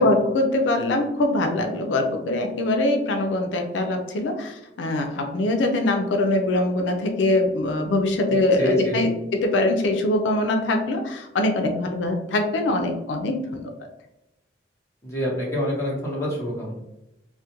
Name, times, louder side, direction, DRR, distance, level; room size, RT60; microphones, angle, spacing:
voice 1, 0.0-13.7, left 2 dB, 85° left, 4 dB, 0.4 m, -23 dB
voice 2, 8.6-9.0 15.0-16.8, equal, 15° left, -6 dB, 0.9 m, -26 dB
2.4 x 2.1 x 2.8 m, 0.90 s
head